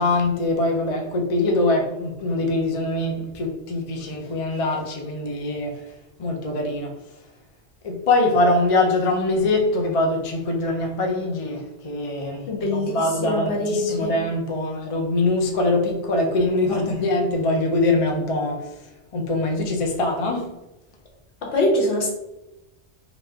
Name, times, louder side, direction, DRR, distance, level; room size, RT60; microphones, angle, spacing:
voice 1, 0.0-5.8 6.2-6.9 7.8-18.7 19.1-20.5, left 2 dB, 40° left, 0.5 m, -23 dB
voice 2, 12.5-14.1 21.4-22.1, left 1 dB, 70° left, 1.2 m, -23 dB
3.0 x 3.0 x 3.5 m
omnidirectional pair, 1.2 m